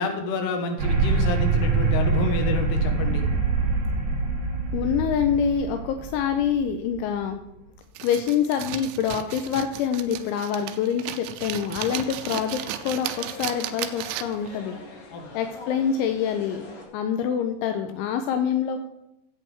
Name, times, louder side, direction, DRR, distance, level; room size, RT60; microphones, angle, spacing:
voice 1, 0.0-3.2 15.1-15.3, left 3 dB, 65° left, 4 dB, 3.0 m, -28 dB
sound 1, 0.8-7.3, right 4 dB, 55° right, 3.5 m, -24 dB
voice 2, 4.7-7.4 8.0-14.8 15.3-16.7 16.9-18.8, left 8 dB, 85° left, 7 dB, 2.9 m, -26 dB
sound 2, 8.0-14.5, right 12 dB, 90° right, 2.6 m, -34 dB
sound 3, 11.8-16.8, left 3 dB, 50° left, 3.2 m, -44 dB
16.0 x 8.5 x 3.5 m, 0.86 s
omnidirectional pair, 5.7 m